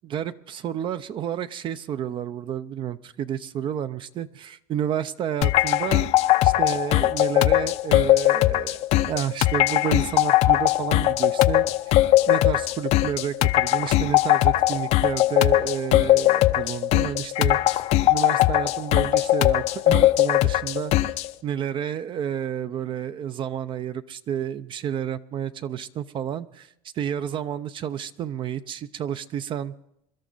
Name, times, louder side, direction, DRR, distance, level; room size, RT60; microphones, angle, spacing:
voice 1, 0.0-6.1 6.4-8.8 9.1-11.7 12.3-17.8 18.1-21.1 21.4-26.7 26.9-29.7, right 9 dB, 40° right, 13 dB, 0.6 m, -30 dB
sound 1, 5.4-21.3, left 15 dB, 60° left, 0.6 m, -20 dB
23.5 x 12.5 x 4.0 m, 0.78 s
supercardioid pair, 120°, 13 cm